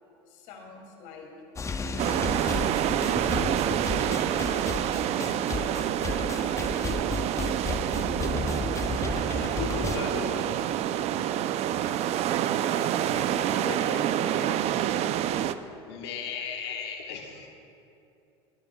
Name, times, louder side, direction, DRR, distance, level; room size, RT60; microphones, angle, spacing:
voice 1, 0.3-2.6 3.2-3.6 4.0-6.3 12.8-14.5, left 3 dB, 65° left, 1 dB, 2.7 m, -44 dB
sound 1, 1.6-10.0, left 4 dB, 20° left, 0.7 m, -33 dB
sound 2, 2.0-15.5, right 11 dB, 50° right, 0.5 m, -27 dB
voice 2, 9.3-10.6 15.9-17.5, left 6 dB, 80° left, 2 dB, 1.6 m, -36 dB
22.5 x 12.0 x 2.3 m, 2.7 s
hypercardioid pair, 80°, 14 cm